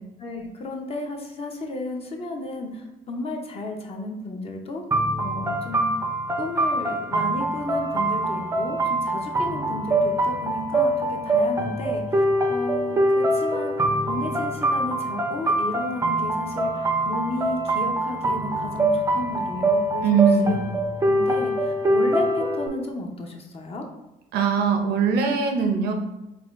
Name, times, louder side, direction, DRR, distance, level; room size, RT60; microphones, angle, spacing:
voice 1, 0.2-4.8 5.2-5.9 6.4-13.8 14.1-20.6 21.1-23.9, left 1 dB, 35° left, 2 dB, 0.7 m, -33 dB
sound 1, 4.9-22.7, right 1 dB, 20° right, 0.5 m, -24 dB
voice 2, 20.0-20.6 24.3-25.9, right 6 dB, 75° right, 4 dB, 0.7 m, -21 dB
4.1 x 2.3 x 3.5 m, 0.96 s
cardioid pair, 110°, 17 cm